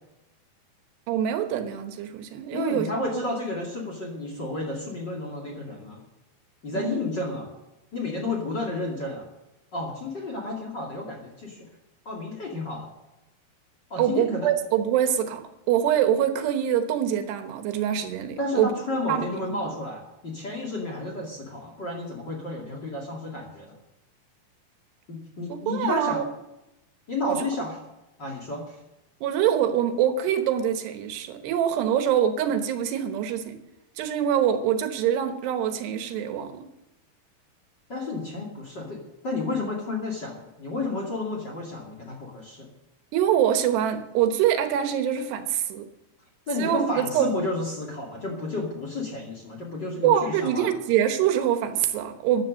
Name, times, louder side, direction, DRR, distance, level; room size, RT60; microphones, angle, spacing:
voice 1, 1.1-2.9 3.1-3.2 6.7-7.0 14.0-15.4 15.7-18.7 19.1-19.2 19.5-19.7 25.5-26.2 27.2-27.4 29.2-33.6 34.0-36.7 43.1-45.9 46.6-47.5 50.0-52.4, right 10 dB, 80° right, 7 dB, 3.3 m, -24 dB
voice 2, 2.5-6.0 6.6-7.5 7.9-9.3 9.7-11.6 12.0-12.9 13.9-14.5 18.4-23.8 25.1-26.2 27.1-27.8 28.2-28.8 37.9-42.7 46.5-50.7, left 2 dB, 30° left, 0 dB, 2.3 m, -31 dB
14.5 x 10.5 x 6.4 m, 0.94 s
omnidirectional pair, 4.8 m